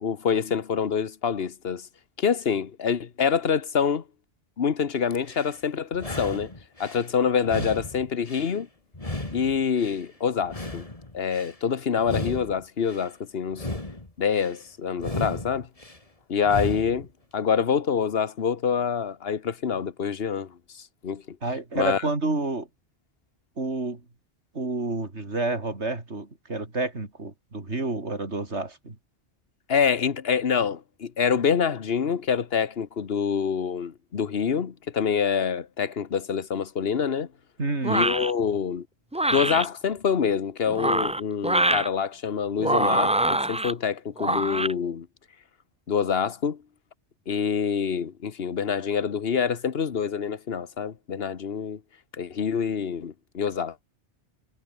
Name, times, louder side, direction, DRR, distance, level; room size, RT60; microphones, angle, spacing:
voice 1, 0.0-1.9 2.2-4.0 4.6-6.5 6.8-8.7 9.3-10.8 11.1-13.7 14.2-15.7 16.3-17.1 17.3-20.5 21.0-21.4 21.7-22.0 29.7-37.3 37.9-38.9 39.3-45.1 45.9-46.6 47.3-51.8 52.2-53.7, left 7 dB, 60° left, 1.4 m, -26 dB
sound 1, 5.1-5.6 5.9-7.1 7.4-8.6 8.9-10.1 10.4-11.6 12.0-13.1 13.5-14.6 15.0-16.0 16.4-17.1, left 2 dB, 30° left, 3.0 m, -35 dB
voice 2, 21.4-22.7 23.6-24.0 24.5-29.0 37.6-38.0, right 2 dB, 75° right, 4.0 m, -29 dB
sound 2, 37.8-38.3 39.1-39.7 40.7-41.9 42.6-43.7 44.2-44.7, right 1 dB, 10° right, 0.3 m, -24 dB
omnidirectional pair, 1.2 m